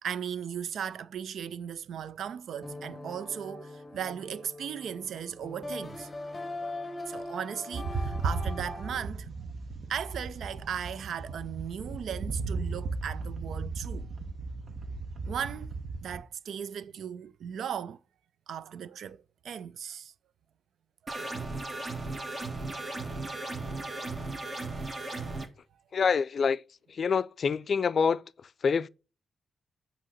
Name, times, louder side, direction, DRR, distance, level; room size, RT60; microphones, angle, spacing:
voice 1, 0.0-6.1 7.1-9.3 9.9-14.1 15.3-15.7 16.0-18.0 18.5-20.1, right 8 dB, 80° right, 0.4 m, -37 dB
sound 1, 2.6-9.0, left 2 dB, 25° left, 0.8 m, -41 dB
sound 2, 7.7-16.2, right 3 dB, 50° right, 1.1 m, -36 dB
sound 3, 21.1-25.5, right 2 dB, 30° right, 1.4 m, -36 dB
voice 2, 25.9-26.6 26.9-28.9, left 6 dB, 50° left, 0.3 m, -27 dB
8.3 x 2.9 x 6.3 m
cardioid pair, 105°, 0 cm